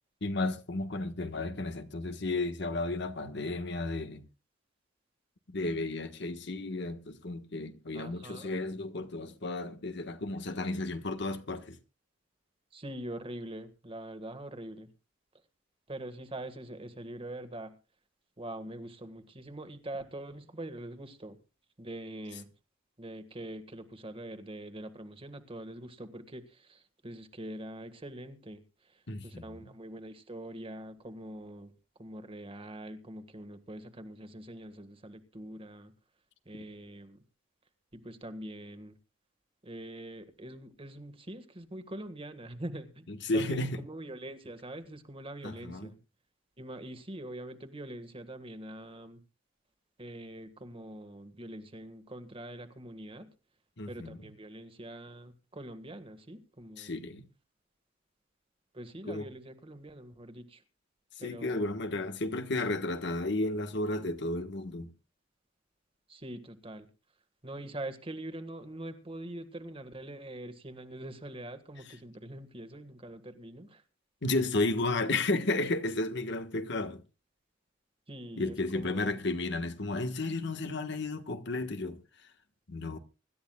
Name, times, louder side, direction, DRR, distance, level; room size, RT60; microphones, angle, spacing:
voice 1, 0.2-4.2 5.5-11.8 29.1-29.4 43.2-43.8 45.4-45.9 53.8-54.2 56.8-57.2 59.1-59.2 61.2-64.9 74.2-77.0 78.4-82.0 82.7-83.0, left 2 dB, 65° left, 1.4 m, -33 dB
voice 2, 7.9-8.5 12.7-14.9 15.9-17.7 18.4-21.4 21.8-22.5 23.0-31.7 32.0-35.9 36.4-37.2 37.9-39.0 39.6-43.1 43.3-46.0 46.6-49.2 50.0-53.3 53.9-56.9 58.7-60.6 61.2-61.8 66.1-66.9 67.4-73.8 78.1-79.2, right 1 dB, 30° right, 1.6 m, -44 dB
25.0 x 13.0 x 2.4 m
head